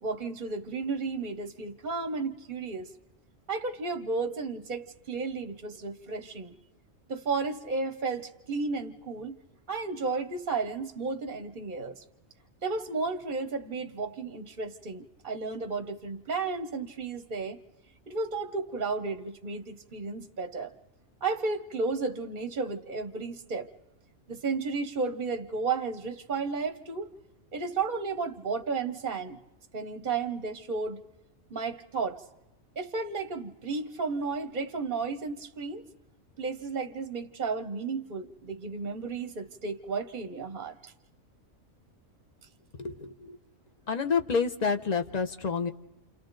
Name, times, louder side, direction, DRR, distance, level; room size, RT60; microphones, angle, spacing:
voice 1, 0.0-2.9 3.5-6.5 7.1-9.4 9.7-12.0 12.6-17.6 18.1-20.7 21.2-23.7 24.3-27.1 27.5-29.4 29.7-31.0 31.5-32.2 32.8-35.8 36.4-40.9, right 4 dB, 45° right, 9 dB, 0.9 m, -33 dB
voice 2, 42.8-43.4 43.9-45.7, left 5 dB, 35° left, 8 dB, 0.8 m, -28 dB
29.0 x 28.0 x 3.9 m, 1.0 s
omnidirectional pair, 1.4 m